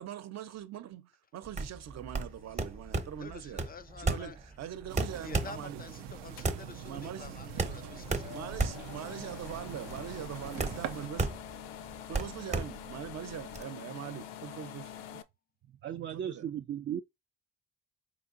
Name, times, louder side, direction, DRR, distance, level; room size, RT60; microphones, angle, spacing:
voice 1, 0.0-3.7 4.0-5.8 6.9-7.3 8.3-11.3 12.1-14.9 16.3-16.5, right 10 dB, 60° right, 0.8 m, -42 dB
sound 1, 1.5-13.6, right 3 dB, 25° right, 0.9 m, -35 dB
voice 2, 3.2-4.4 5.1-8.3, left 6 dB, 30° left, 0.4 m, -48 dB
sound 2, 4.9-11.1, right 9 dB, 85° right, 0.6 m, -44 dB
sound 3, 6.4-15.2, left 10 dB, 90° left, 0.5 m, -46 dB
voice 3, 15.8-17.0, right 9 dB, 40° right, 0.4 m, -36 dB
4.8 x 3.4 x 2.6 m
supercardioid pair, 60°, 30 cm